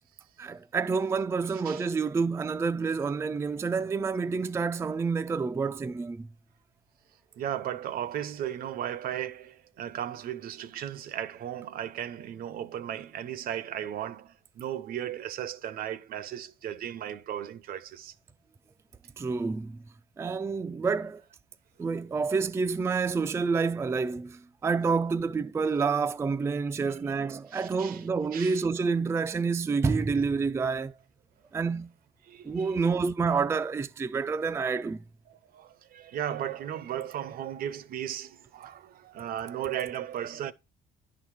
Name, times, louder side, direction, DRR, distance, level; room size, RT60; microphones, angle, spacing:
voice 1, 0.4-6.3 19.2-19.8 20.2-21.2 21.8-30.9 31.5-31.9 32.4-35.0, right 5 dB, 15° right, 0.3 m, -28 dB
voice 2, 7.3-18.1 27.5-28.0 28.3-28.6 32.2-32.8 35.3-40.5, right 10 dB, 60° right, 0.6 m, -36 dB
10.5 x 3.9 x 4.6 m
cardioid pair, 110°, 17 cm